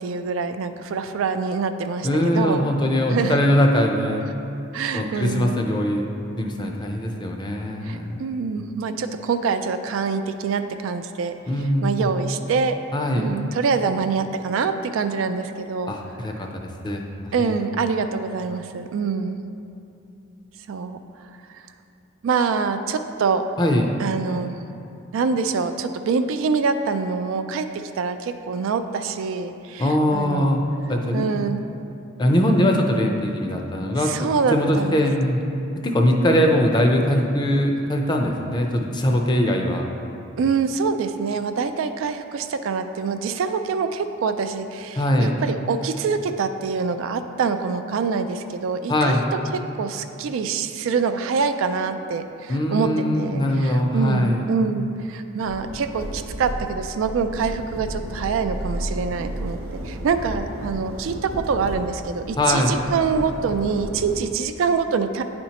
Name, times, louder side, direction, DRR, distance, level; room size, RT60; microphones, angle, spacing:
voice 1, 0.0-2.7 3.1-3.4 4.7-5.5 7.8-11.3 11.8-12.8 13.2-15.9 17.3-19.4 20.7-21.0 21.5-21.6 22.2-23.5 24.0-24.5 25.1-30.5 31.1-31.6 34.0-35.0 40.4-49.2 49.5-59.6 59.8-65.2, right 5 dB, 65° right, 9 dB, 0.3 m, -25 dB
voice 2, 2.0-4.3 4.9-6.1 6.4-8.2 11.5-12.1 12.9-13.3 15.9-16.5 16.8-17.0 17.4-17.5 23.6-23.9 29.8-30.6 30.9-31.3 32.2-35.4 35.8-39.9 45.0-45.4 48.9-49.2 52.5-54.4 62.4-62.7, left 1 dB, 20° left, 2 dB, 0.5 m, -21 dB
sound 1, 55.4-64.2, right 1 dB, 90° right, 0.7 m, -33 dB
9.8 x 4.3 x 2.9 m, 2.7 s
head